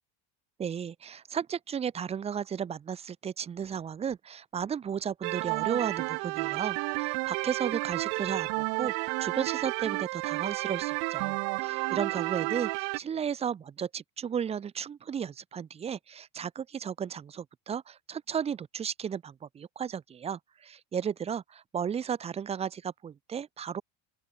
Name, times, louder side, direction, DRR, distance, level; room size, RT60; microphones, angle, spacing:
voice 1, 0.6-23.8, right 8 dB, 15° right, 0.4 m, -34 dB
sound 1, 5.2-13.0, right 40 dB or more, 75° right, 0.9 m, -31 dB
open air
cardioid pair, 160°, 49 cm